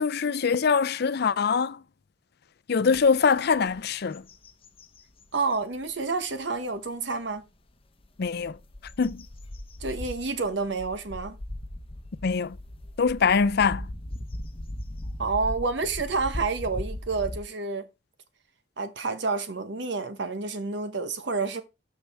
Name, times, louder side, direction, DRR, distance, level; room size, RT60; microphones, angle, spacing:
voice 1, 0.0-1.8 2.7-4.2 8.2-8.6 9.0-9.2 12.2-12.6 13.0-13.9, left 5 dB, 55° left, 0.5 m, -23 dB
sound 1, 2.9-3.0 3.5-3.8 4.1-5.6 6.2-6.3 8.0-17.4, left 1 dB, 30° left, 0.9 m, -38 dB
voice 2, 5.3-7.4 9.8-11.4 15.2-17.9 18.8-21.6, right 4 dB, 65° right, 1.0 m, -29 dB
13.0 x 4.7 x 3.5 m
head